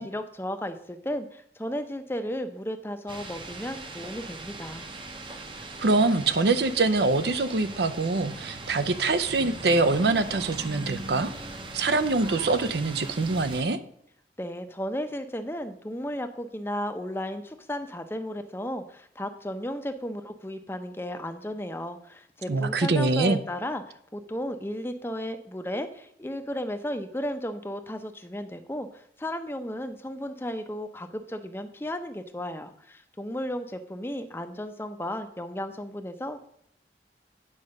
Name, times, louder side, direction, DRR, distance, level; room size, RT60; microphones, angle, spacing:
voice 1, 0.0-4.9 14.4-36.5, equal, 15° left, 8 dB, 0.6 m, -34 dB
sound 1, 3.1-13.6, right 2 dB, 30° right, 0.8 m, -40 dB
voice 2, 5.8-11.3 11.7-13.8 22.5-23.4, right 3 dB, 65° right, 12 dB, 0.6 m, -24 dB
8.6 x 4.9 x 6.4 m, 0.69 s
head